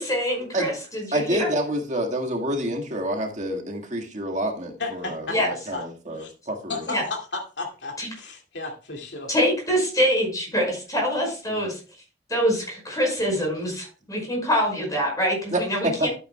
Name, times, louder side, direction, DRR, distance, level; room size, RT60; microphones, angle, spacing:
voice 1, 0.0-1.5 5.3-5.5 6.9-7.0 8.0-8.1 9.3-11.8 12.3-16.1, equal, 20° left, 0 dB, 5.2 m, -25 dB
voice 2, 1.1-6.8 11.5-11.6 15.5-16.1, right 1 dB, 45° right, 1 dB, 1.8 m, -28 dB
voice 3, 4.8-5.4 5.7-5.8 6.1-6.3 6.7-9.3, left 3 dB, 85° left, 2 dB, 2.3 m, -33 dB
12.5 x 8.8 x 2.3 m, 0.35 s
head